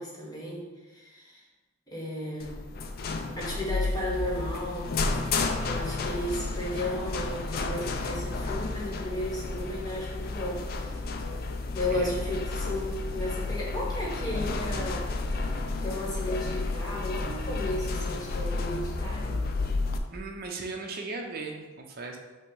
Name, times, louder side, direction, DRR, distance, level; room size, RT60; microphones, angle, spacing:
voice 1, 0.0-1.4 1.9-2.6 3.4-4.9 5.6-11.0 11.7-15.5 15.8-19.4, left 1 dB, 20° left, -4 dB, 1.0 m, -34 dB
sound 1, 2.4-20.0, left 3 dB, 45° left, 0.3 m, -31 dB
voice 2, 20.1-22.2, right 3 dB, 45° right, 2 dB, 0.6 m, -37 dB
5.6 x 2.0 x 4.6 m, 1.2 s
head